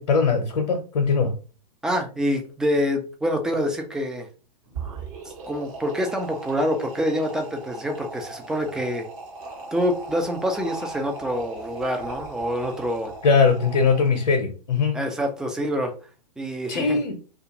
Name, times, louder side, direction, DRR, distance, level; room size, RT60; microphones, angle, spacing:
voice 1, 0.0-1.4 13.2-15.0 16.7-17.2, left 5 dB, 65° left, 0.7 m, -21 dB
voice 2, 1.8-4.3 5.5-9.1 9.7-13.1 14.9-15.9 16.4-17.0, equal, 5° right, 0.3 m, -26 dB
sound 1, 4.6-14.3, right 3 dB, 50° right, 1.1 m, -38 dB
2.4 x 2.4 x 2.9 m
figure-of-eight pair, 110°, 21 cm